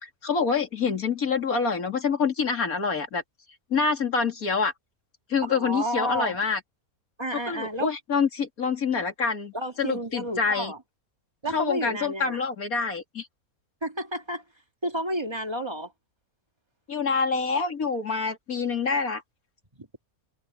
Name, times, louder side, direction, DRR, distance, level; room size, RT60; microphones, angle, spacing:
voice 1, 0.0-3.2 3.7-4.7 5.3-6.6 7.5-10.7 11.5-13.3 16.9-19.2, left 5 dB, 75° left, 3.2 m, -26 dB
voice 2, 5.4-6.4 7.2-7.9 9.5-10.8 11.4-12.4 13.8-14.4 14.8-15.9 19.8-19.9, right 1 dB, 20° right, 2.2 m, -31 dB
omnidirectional pair, 1.5 m